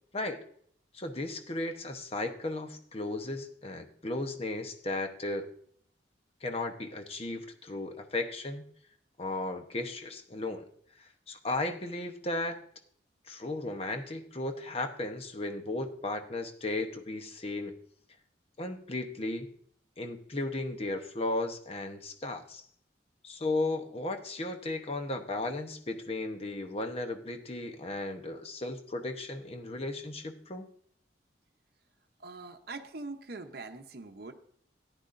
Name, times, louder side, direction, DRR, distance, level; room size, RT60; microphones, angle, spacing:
voice 1, 0.1-0.4 0.9-5.5 6.4-8.7 9.2-10.7 11.0-12.6 13.3-17.7 18.6-19.5 20.0-22.6 23.2-30.7, left 2 dB, 35° left, 6 dB, 0.9 m, -35 dB
voice 2, 32.2-34.3, right 3 dB, 55° right, 5 dB, 0.8 m, -43 dB
14.0 x 10.0 x 2.6 m, 0.62 s
head